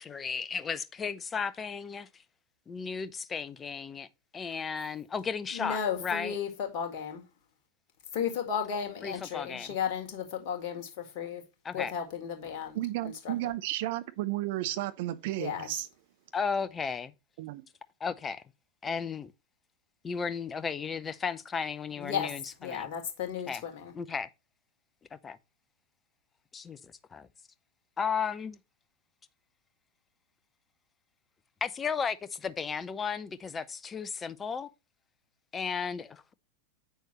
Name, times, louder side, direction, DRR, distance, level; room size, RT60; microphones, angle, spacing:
voice 1, 0.0-2.1 2.7-4.1 4.3-6.4 9.0-9.8 11.6-11.9 16.3-17.1 18.0-18.4 18.8-19.3 20.0-22.9 23.5-23.6 23.9-24.3 25.1-25.4 26.5-26.8 27.1-27.3 28.0-28.6 31.6-34.7 35.5-36.3, left 6 dB, 20° left, 0.6 m, -34 dB
voice 2, 5.5-7.2 8.1-11.4 11.7-12.8 13.3-13.4 15.4-15.7 22.0-22.3 22.6-23.9, left 7 dB, 45° left, 1.9 m, -34 dB
voice 3, 12.7-15.9 17.4-17.6, right 16 dB, 50° right, 0.8 m, -33 dB
8.0 x 6.3 x 3.0 m
figure-of-eight pair, 90°, 0 cm